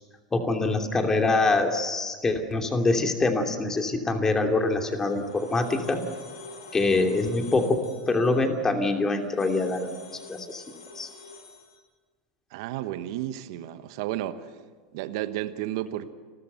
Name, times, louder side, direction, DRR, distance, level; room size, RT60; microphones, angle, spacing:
voice 1, 0.3-6.0 6.7-7.8 8.1-10.0 10.3-10.6 10.9-11.1, left 2 dB, 20° left, 4 dB, 2.8 m, -24 dB
sound 1, 4.3-11.8, left 3 dB, 90° left, 3.7 m, -46 dB
voice 2, 12.5-14.5 14.9-16.1, right 13 dB, 65° right, 11 dB, 1.2 m, -32 dB
29.5 x 13.5 x 8.0 m, 1.5 s
hypercardioid pair, 95°, 3 cm